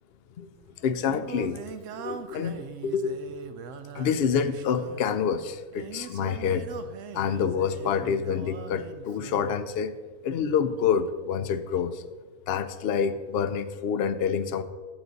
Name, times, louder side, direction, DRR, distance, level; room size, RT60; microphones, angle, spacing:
Singing, 0.6-9.6, right 7 dB, 65° right, 0.9 m, -41 dB
voice 1, 0.8-1.6 1.9-3.2 3.9-6.7 7.1-9.9 10.2-12.0 12.5-14.6, left 7 dB, 60° left, 11 dB, 0.6 m, -27 dB
12.0 x 7.9 x 4.0 m, 1.4 s
omnidirectional pair, 1.5 m